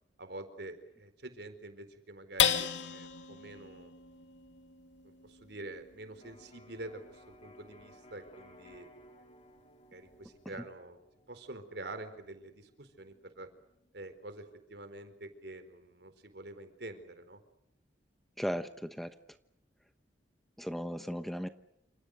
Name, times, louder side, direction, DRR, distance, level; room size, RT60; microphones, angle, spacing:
voice 1, 0.2-3.9 5.0-8.9 9.9-11.0 11.3-13.5 13.9-17.4, right 2 dB, 60° right, 9 dB, 4.4 m, -47 dB
sound 1, 2.4-9.1 9.6-9.7 10.1-10.6, left 8 dB, 80° left, 2.4 m, -36 dB
Electric guitar, 6.2-14.0, equal, 35° left, 4.5 m, -59 dB
voice 2, 18.4-19.1 20.6-21.5, equal, ahead, 9 dB, 1.0 m, -36 dB
29.0 x 27.5 x 6.7 m, 0.79 s
head